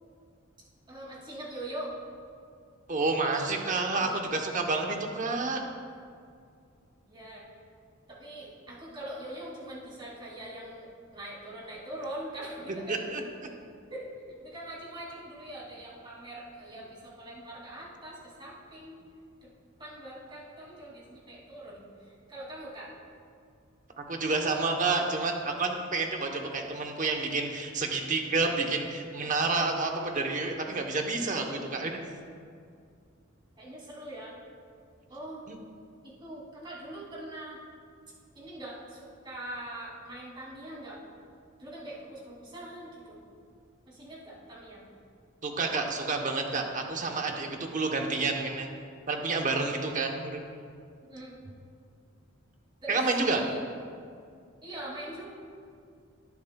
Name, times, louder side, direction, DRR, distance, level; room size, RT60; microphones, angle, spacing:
voice 1, 0.9-1.9 3.6-4.2 7.1-7.4 8.1-13.0 13.9-14.1 14.4-19.0 19.4-19.5 19.8-22.9 33.6-34.3 35.1-35.4 36.0-37.6 38.3-41.0 41.6-43.2 43.9-44.8 51.0-51.3 52.8-53.0 53.3-53.7 54.6-55.2, right 1 dB, 25° right, -6 dB, 2.6 m, -42 dB
voice 2, 2.9-5.6 12.9-13.2 24.0-32.0 35.5-35.6 45.4-48.7 49.1-50.4 52.9-53.4, right 3 dB, 40° right, 3 dB, 0.9 m, -29 dB
19.0 x 7.1 x 2.3 m, 2.3 s
head